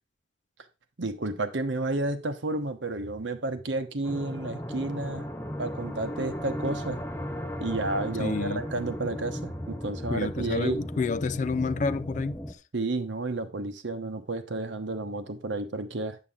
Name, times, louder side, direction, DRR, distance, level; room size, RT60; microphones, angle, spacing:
voice 1, 1.0-5.3 5.6-7.1 7.6-10.8 12.7-16.2, right 2 dB, 85° right, 1.0 m, -31 dB
sound 1, 4.0-12.5, equal, 10° left, 0.7 m, -36 dB
voice 2, 8.2-8.6 10.1-12.4, left 4 dB, 45° left, 0.3 m, -29 dB
8.7 x 6.3 x 3.6 m
head